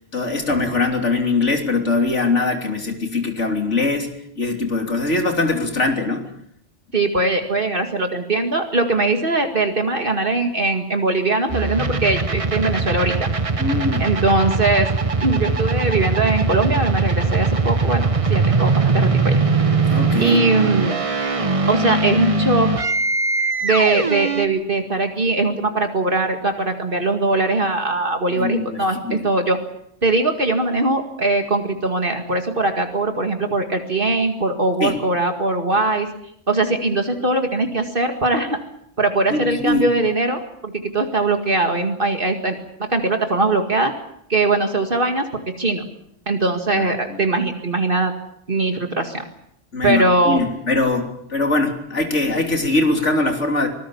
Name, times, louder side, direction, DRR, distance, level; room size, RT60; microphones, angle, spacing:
voice 1, 0.1-4.1 4.4-6.3 13.6-14.1 19.9-20.4 28.4-29.2 34.8-34.9 39.3-39.8 46.7-47.2 49.7-53.7, left 3 dB, 80° left, 4 dB, 3.6 m, -22 dB
voice 2, 6.9-13.3 14.0-14.9 15.2-19.4 20.2-21.0 21.7-22.7 23.6-29.6 30.0-36.1 36.5-38.6 39.0-43.9 44.3-45.8 46.3-48.1 48.5-49.2 49.8-50.4, right 2 dB, 45° right, 5 dB, 2.2 m, -21 dB
sound 1, 11.5-24.5, right 3 dB, 30° right, 1.1 m, -21 dB
25.0 x 19.5 x 7.2 m, 0.71 s
omnidirectional pair, 1.2 m